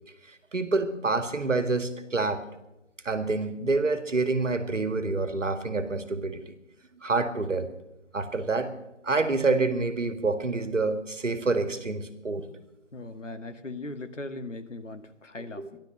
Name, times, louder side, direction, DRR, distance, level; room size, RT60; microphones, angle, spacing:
voice 1, 0.3-2.4 3.0-6.5 6.9-7.7 8.1-8.7 9.0-12.5 15.6-15.7, right 3 dB, 85° right, 9 dB, 2.0 m, -27 dB
voice 2, 12.9-15.8, left 2 dB, 85° left, 8 dB, 1.7 m, -39 dB
14.0 x 12.0 x 6.6 m, 0.92 s
figure-of-eight pair, 165°, 36 cm